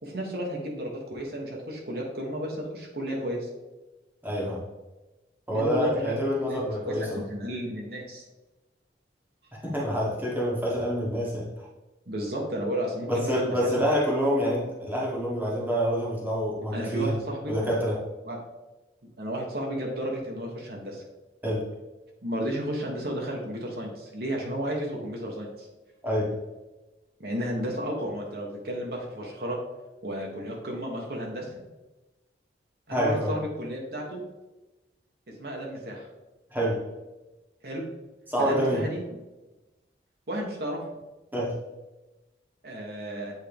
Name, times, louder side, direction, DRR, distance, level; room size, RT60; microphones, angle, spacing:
voice 1, 0.0-3.5 5.5-6.6 6.9-8.2 12.1-13.8 16.7-17.5 18.2-18.4 19.2-21.0 22.2-25.7 27.2-29.6 30.0-31.6 32.9-34.2 35.4-36.1 37.6-37.8 38.4-39.0 40.3-40.8 42.6-43.3, equal, 55° right, -1 dB, 1.1 m, -33 dB
voice 2, 4.2-4.6 5.5-7.2 9.6-11.7 13.1-17.2 17.5-18.0 21.4-21.6 26.0-26.3 32.9-33.3 36.5-36.8 38.3-38.9 41.3-41.5, equal, 10° right, -4 dB, 1.2 m, -27 dB
8.2 x 3.7 x 3.4 m, 1.1 s
head